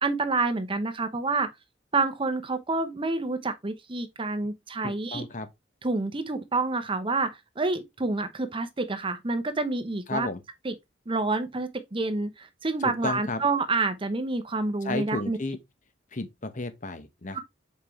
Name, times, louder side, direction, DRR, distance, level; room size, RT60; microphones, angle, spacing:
voice 1, 0.0-1.5 1.9-5.2 5.8-7.3 7.6-10.3 10.6-10.7 11.1-15.4 17.3-17.4, right 3 dB, 30° right, 0.8 m, -28 dB
voice 2, 4.8-5.5 10.1-10.4 12.8-13.4 14.8-15.6 16.1-17.4, left 2 dB, 45° left, 1.1 m, -33 dB
7.4 x 4.7 x 3.1 m
head